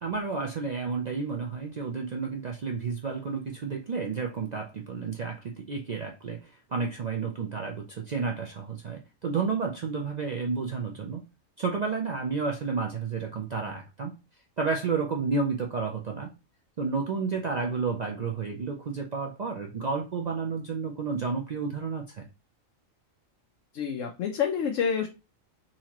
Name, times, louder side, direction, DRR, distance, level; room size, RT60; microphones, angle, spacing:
voice 1, 0.0-11.2 11.6-14.1 14.6-16.3 16.8-22.2, right 4 dB, 70° right, 0.4 m, -31 dB
voice 2, 23.7-25.1, left 7 dB, 70° left, 1.0 m, -28 dB
4.0 x 2.8 x 2.9 m
omnidirectional pair, 1.4 m